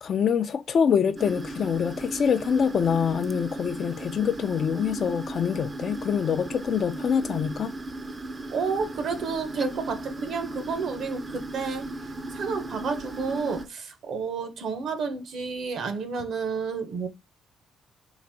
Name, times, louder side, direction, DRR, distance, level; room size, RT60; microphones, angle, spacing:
voice 1, 0.0-7.7, left 7 dB, 55° left, 0.5 m, -25 dB
sound 1, 1.2-13.7, right 2 dB, 30° right, 0.5 m, -36 dB
voice 2, 8.5-17.1, right 5 dB, 65° right, 0.9 m, -31 dB
3.9 x 2.6 x 4.4 m
cardioid pair, 90°, 0 cm